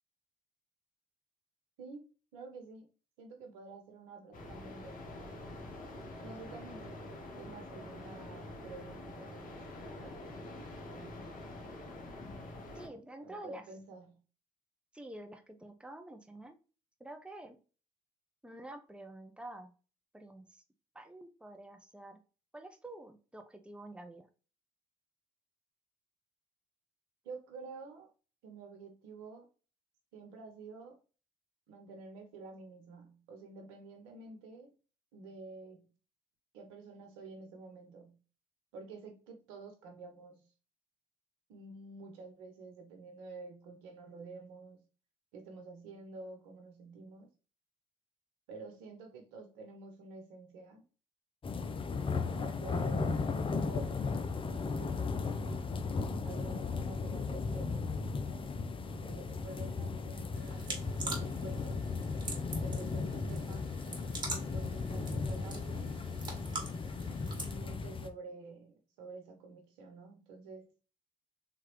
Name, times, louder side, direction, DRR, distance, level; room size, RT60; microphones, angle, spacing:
voice 1, 2.3-2.9 3.2-5.6 6.2-10.2 10.8-11.3 13.2-14.2 27.2-28.1 28.4-29.5 30.1-31.0 31.7-34.7 35.1-35.9 36.5-38.2 38.7-40.5 41.5-44.8 45.3-47.3 48.5-50.8 52.3-54.0 54.4-55.7 56.2-61.8 62.6-63.7 64.3-66.0 67.0-70.6, right 3 dB, 85° right, 1.0 m, -50 dB
sound 1, 4.3-12.9, left 1 dB, 55° left, 1.2 m, -46 dB
voice 2, 12.7-13.6 14.9-16.5 17.0-17.6 18.4-19.7 20.1-20.6 20.9-22.2 22.5-24.3, right 1 dB, 5° right, 0.8 m, -48 dB
sound 2, 51.4-68.1, left 4 dB, 30° left, 0.6 m, -36 dB
sound 3, 60.3-67.6, right 2 dB, 25° right, 1.9 m, -44 dB
3.8 x 3.0 x 3.1 m
hypercardioid pair, 60°, 17 cm